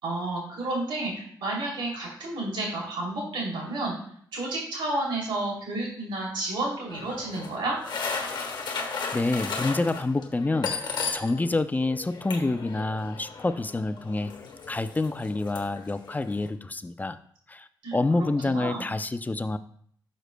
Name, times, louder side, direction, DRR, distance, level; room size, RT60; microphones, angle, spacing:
voice 1, 0.0-3.9 4.3-7.8 17.8-18.9, right 2 dB, 90° right, -3 dB, 3.0 m, -31 dB
sound 1, 6.9-11.5 11.8-16.5, left 5 dB, 65° left, 1.3 m, -35 dB
voice 2, 8.9-14.3 14.7-17.2 17.5-19.6, left 2 dB, 20° left, 11 dB, 0.5 m, -28 dB
11.5 x 6.5 x 2.2 m, 0.62 s
cardioid pair, 65°, 8 cm